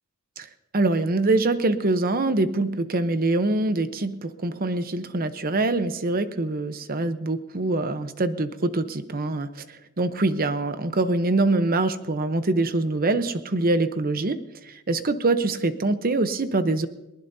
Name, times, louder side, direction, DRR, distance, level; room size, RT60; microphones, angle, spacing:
voice 1, 0.7-16.9, right 2 dB, 40° right, 10 dB, 0.9 m, -24 dB
21.0 x 20.0 x 2.8 m, 0.99 s
head